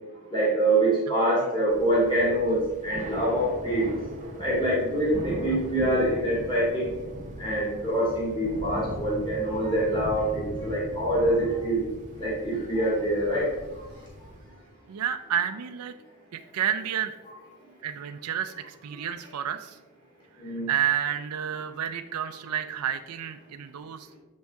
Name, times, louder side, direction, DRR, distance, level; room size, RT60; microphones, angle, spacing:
voice 1, 0.3-3.9 4.4-7.0 7.4-11.9 12.2-13.5 20.4-20.7, right 1 dB, 20° left, -6 dB, 2.1 m, -25 dB
Thunder / Rain, 1.7-14.6, right 1 dB, 35° right, 0.9 m, -39 dB
voice 2, 14.9-15.9 16.3-17.2 17.8-19.8 20.4-24.2, right 9 dB, 80° right, 8 dB, 0.4 m, -30 dB
7.5 x 5.3 x 3.5 m, 1.1 s
head